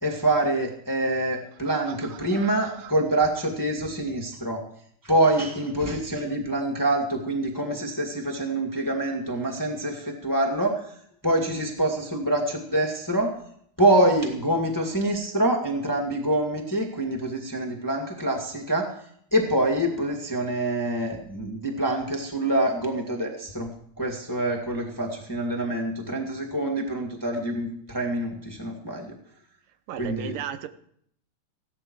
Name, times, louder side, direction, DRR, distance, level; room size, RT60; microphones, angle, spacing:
voice 1, 0.0-4.6 5.0-10.8 11.2-13.3 13.8-18.9 19.3-23.7 24.0-29.1 30.0-30.3, right 1 dB, 10° left, 1 dB, 1.4 m, -25 dB
voice 2, 1.6-2.9 29.9-30.7, right 9 dB, 85° right, 10 dB, 2.6 m, -37 dB
16.0 x 12.0 x 4.7 m, 0.66 s
omnidirectional pair, 3.8 m